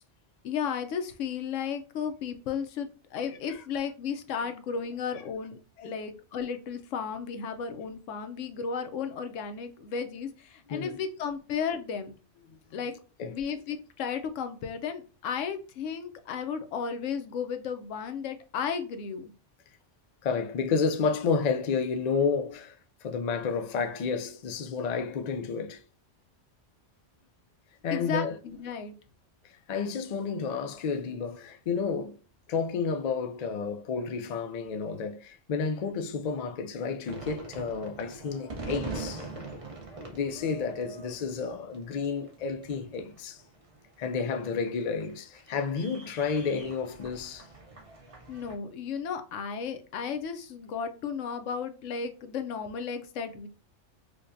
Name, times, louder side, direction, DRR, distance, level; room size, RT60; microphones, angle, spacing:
voice 1, 0.4-5.6 5.8-12.1 12.7-12.9 13.3-19.3 27.9-28.9 48.3-53.5, left 6 dB, 85° left, 1.0 m, -34 dB
voice 2, 20.2-25.8 27.8-28.4 29.4-32.2 32.5-39.3 40.1-43.4 44.0-47.5, left 5 dB, 65° left, 0.4 m, -31 dB
sound 1, 37.0-48.6, right 3 dB, 35° right, 0.6 m, -43 dB
4.9 x 2.2 x 2.5 m
omnidirectional pair, 1.2 m